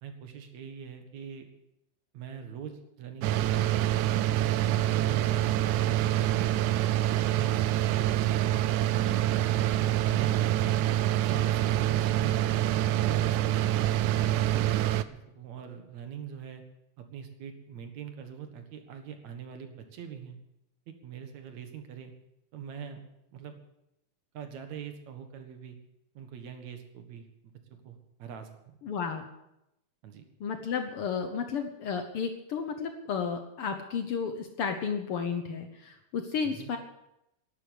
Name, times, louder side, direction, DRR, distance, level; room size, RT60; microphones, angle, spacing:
voice 1, 0.0-1.5 2.1-3.9 4.7-6.6 7.0-7.6 7.9-10.7 11.2-12.5 13.0-13.9 14.6-16.6 17.0-20.4 20.9-22.1 22.5-23.0 23.3-23.5 24.3-25.8 26.1-27.5 27.8-28.8 30.0-30.2 36.4-36.7, right 8 dB, 60° right, 6 dB, 2.6 m, -43 dB
sound 1, 3.2-15.0, right 13 dB, 80° right, 1.7 m, -26 dB
voice 2, 28.8-29.3 30.4-36.8, left 6 dB, 80° left, 6 dB, 1.2 m, -32 dB
12.0 x 11.0 x 8.1 m, 0.84 s
omnidirectional pair, 4.1 m